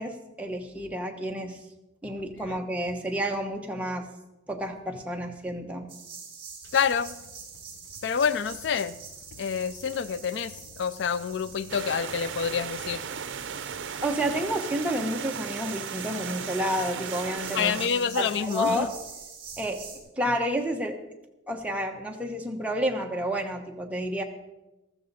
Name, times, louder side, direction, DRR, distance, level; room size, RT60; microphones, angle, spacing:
voice 1, 0.0-1.6 2.0-4.1 4.5-5.9 14.0-17.7 18.2-18.9 19.6-21.0 21.5-24.2, equal, 5° right, 1.1 m, -30 dB
sound 1, 5.9-20.0, right 6 dB, 30° right, 3.4 m, -45 dB
voice 2, 6.7-7.2 8.0-9.0 9.4-13.1 17.5-18.9, left 7 dB, 65° left, 0.4 m, -27 dB
sound 2, 11.7-17.9, right 7 dB, 85° right, 0.6 m, -36 dB
14.0 x 14.0 x 4.2 m
head